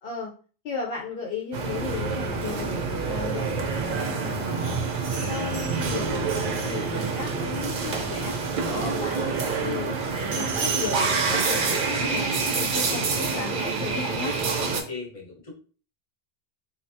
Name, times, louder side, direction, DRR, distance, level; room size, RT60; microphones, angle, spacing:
voice 1, 0.0-0.3 0.6-4.8 5.1-8.3 8.8-9.2 9.6-14.4, left 4 dB, 70° left, -2 dB, 0.8 m, -35 dB
sound 1, 1.5-14.8, right 4 dB, 60° right, 0.6 m, -27 dB
voice 2, 8.6-9.4 12.7-13.1 14.6-15.5, left 3 dB, 35° left, -2 dB, 1.0 m, -37 dB
3.3 x 2.2 x 2.6 m, 0.39 s
omnidirectional pair, 1.1 m